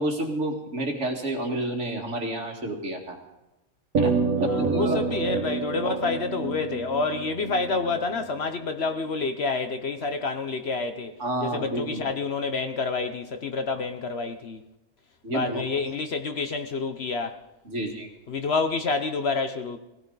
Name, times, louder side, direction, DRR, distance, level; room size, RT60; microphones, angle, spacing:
voice 1, 0.0-3.2 4.0-5.0 5.8-6.0 11.2-12.0 15.2-15.6 17.7-18.1, right 1 dB, 60° right, 2.4 m, -30 dB
sound 1, 3.9-8.6, right 4 dB, 80° right, 1.9 m, -28 dB
voice 2, 4.4-11.2 11.4-14.6 15.3-17.4 18.3-19.8, left 4 dB, 55° left, 1.1 m, -28 dB
18.0 x 17.0 x 4.0 m
omnidirectional pair, 1.4 m